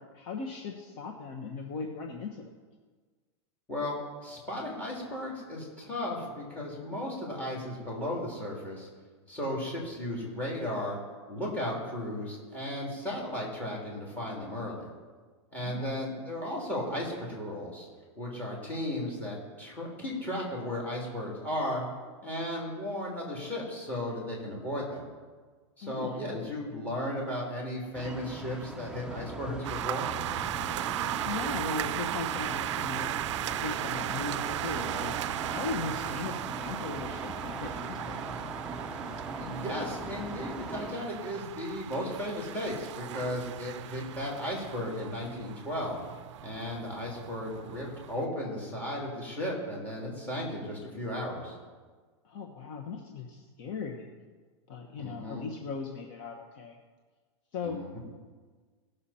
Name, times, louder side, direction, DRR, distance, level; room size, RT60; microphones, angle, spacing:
voice 1, 0.0-2.5 15.6-16.0 25.8-26.3 31.2-33.1 33.6-35.2 35.5-38.2 52.2-54.1 54.7-56.8 57.5-58.0, left 4 dB, 45° left, 1 dB, 1.1 m, -38 dB
voice 2, 3.7-8.9 9.3-11.0 11.3-14.9 15.5-17.9 18.2-21.8 22.2-25.1 25.8-30.1 39.1-46.0 46.4-51.5 55.0-55.4 57.6-58.0, left 1 dB, 10° left, -3 dB, 3.0 m, -35 dB
sound 1, 27.9-40.9, right 2 dB, 5° right, 0.5 m, -40 dB
sound 2, 29.6-48.3, right 13 dB, 75° right, 0.4 m, -37 dB
17.5 x 6.6 x 4.3 m, 1.5 s
supercardioid pair, 155°, 15 cm